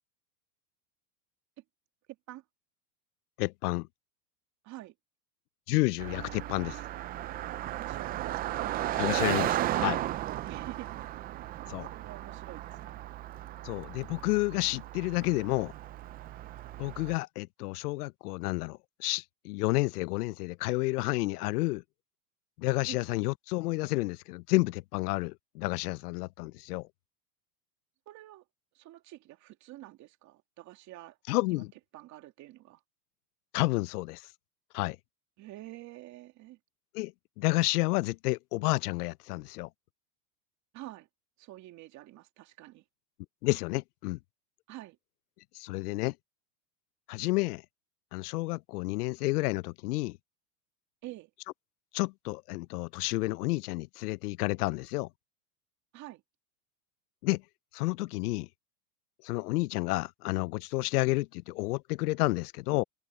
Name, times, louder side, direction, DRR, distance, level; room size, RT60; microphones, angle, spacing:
voice 1, 3.4-3.9 5.7-6.8 9.0-10.0 11.7-11.9 13.6-15.7 16.8-21.8 22.6-26.9 31.3-31.7 33.5-34.2 34.7-35.0 36.9-37.1 37.4-39.7 43.4-44.2 45.5-46.1 47.1-47.6 48.1-50.2 51.9-55.1 57.2-57.4 57.7-58.5 59.2-62.8, left 21 dB, 75° left, 0.6 m, -30 dB
voice 2, 4.6-4.9 7.7-8.7 10.4-10.9 11.4-11.6 11.9-13.1 22.9-23.1 28.1-28.4 28.7-31.2 31.5-31.6 31.9-32.8 35.4-36.6 40.7-41.1 41.4-42.8 44.7-45.0 51.0-51.3 55.9-56.2, right 16 dB, 35° right, 2.6 m, -47 dB
Car passing by, 6.0-17.2, right 14 dB, 20° right, 0.5 m, -35 dB
supercardioid pair, 140°, 46 cm